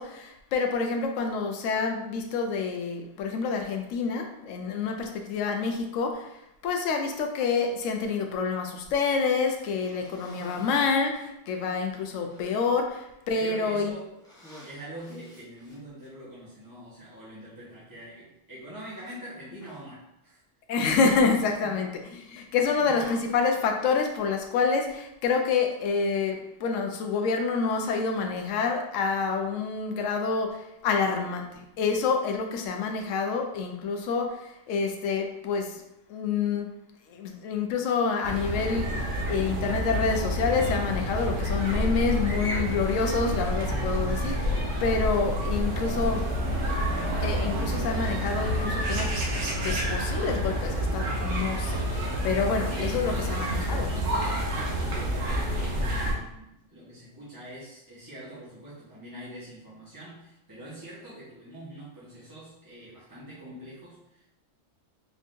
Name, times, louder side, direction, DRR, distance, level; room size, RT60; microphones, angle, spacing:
voice 1, 0.0-6.3 6.6-13.9 20.7-35.8 36.1-36.7 37.1-46.3 47.2-49.1 49.5-53.9, left 5 dB, 75° left, 4 dB, 0.9 m, -28 dB
Cough, 9.4-11.1 11.8-11.9 12.3-12.8 13.5-13.8 14.1-16.1 17.0-17.1 19.0-19.2 19.6-19.9 21.1-21.8 22.0-22.4 23.0-23.7, left 1 dB, 5° left, 0.4 m, -49 dB
voice 2, 13.3-14.1 14.6-20.4 21.6-21.9 22.3-22.4 22.8-23.1 46.6-46.9 52.6-64.3, right 1 dB, 15° right, -9 dB, 1.0 m, -44 dB
sound 1, 38.2-56.1, equal, 85° right, 1.3 m, -28 dB
3.9 x 3.5 x 2.5 m, 0.84 s
omnidirectional pair, 1.4 m